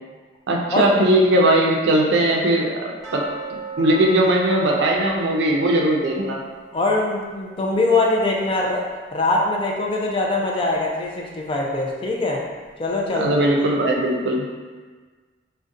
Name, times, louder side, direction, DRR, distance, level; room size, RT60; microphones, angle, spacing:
voice 1, 0.5-3.2 3.5-6.4 13.1-14.5, right 1 dB, 75° right, -1 dB, 0.4 m, -19 dB
sound 1, 3.0-9.9 10.2-10.3 10.8-10.9 11.4-11.5, right 4 dB, ahead, 0.9 m, -37 dB
voice 2, 6.7-12.4 12.8-13.5, left 2 dB, 30° left, -1 dB, 0.3 m, -22 dB
2.6 x 2.1 x 3.6 m, 1.4 s
head